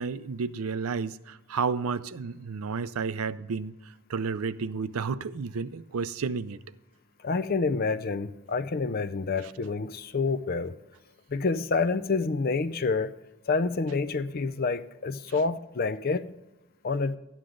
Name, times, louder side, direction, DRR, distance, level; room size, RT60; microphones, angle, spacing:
voice 1, 0.0-3.7 4.1-6.6, right 5 dB, 75° right, 0.5 m, -31 dB
voice 2, 7.2-10.7 11.3-13.1 13.5-16.3 16.8-17.2, left 4 dB, 45° left, 0.5 m, -28 dB
13.0 x 9.6 x 3.7 m
head